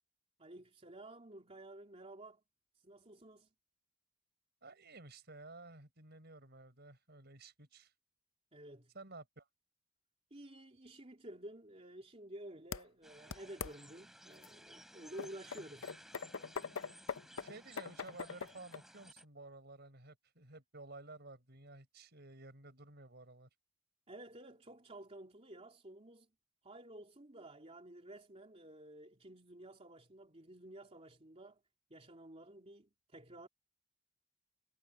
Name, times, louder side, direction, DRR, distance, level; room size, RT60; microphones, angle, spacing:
voice 1, 0.4-2.4 2.8-3.5 8.5-8.9 10.3-15.9 24.1-26.3 26.6-31.6 31.9-33.5, right 1 dB, 30° right, 3.2 m, -52 dB
voice 2, 4.6-7.9 8.9-9.5 17.4-23.5, right 2 dB, 50° right, 5.5 m, -53 dB
sound 1, 12.7-12.8 13.3-13.7 14.4-14.5 15.2-18.8, left 5 dB, 75° left, 0.7 m, -42 dB
sound 2, 13.0-19.3, equal, ahead, 4.1 m, -58 dB
head